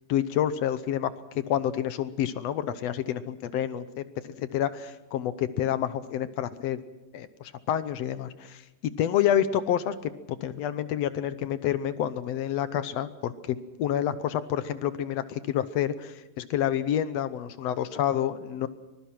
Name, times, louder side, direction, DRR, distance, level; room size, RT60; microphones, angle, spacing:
voice 1, 0.1-6.8 7.1-8.6 9.0-10.1 10.4-18.7, left 10 dB, 70° left, 13 dB, 1.7 m, -28 dB
24.5 x 21.5 x 6.0 m, 1.0 s
omnidirectional pair, 3.7 m